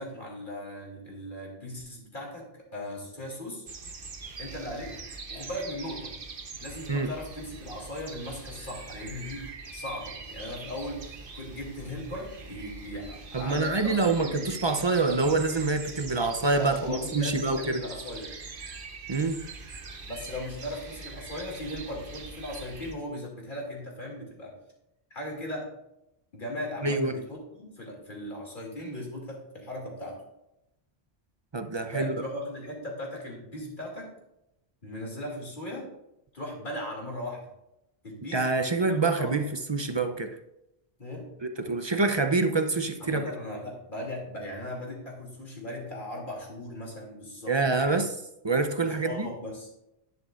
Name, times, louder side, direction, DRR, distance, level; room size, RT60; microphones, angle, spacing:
voice 1, 0.0-3.6 4.4-5.0 5.3-6.1 6.6-14.6 16.5-18.3 20.1-24.5 25.1-25.7 26.3-30.2 31.9-34.1 34.8-35.9 36.3-37.4 38.0-39.3 41.0-41.3 43.0-47.5 47.8-48.0 48.8-49.7, left 1 dB, 50° left, -1 dB, 2.8 m, -38 dB
sound 1, 3.7-22.9, right 3 dB, 55° right, 1.2 m, -43 dB
voice 2, 13.3-17.8 19.1-19.4 26.8-27.2 31.5-32.1 38.3-39.4 39.7-40.3 41.4-43.2 47.5-48.1 48.4-49.3, right 3 dB, 30° right, 7 dB, 0.5 m, -26 dB
11.0 x 10.5 x 2.5 m, 0.86 s
omnidirectional pair, 1.1 m